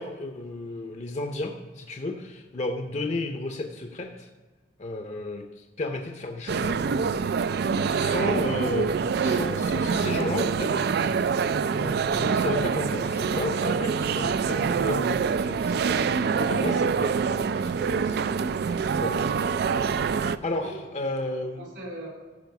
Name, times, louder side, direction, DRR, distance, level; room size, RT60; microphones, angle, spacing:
voice 1, 0.0-4.3 4.8-6.8 8.0-18.4 18.7-19.2 19.7-21.6, left 2 dB, 40° left, 4 dB, 0.7 m, -33 dB
sound 1, 6.5-20.4, right 5 dB, 60° right, 0.3 m, -25 dB
voice 2, 7.7-8.5 20.5-22.1, right 1 dB, 75° right, -1 dB, 3.5 m, -42 dB
14.5 x 5.0 x 4.7 m, 1.3 s
head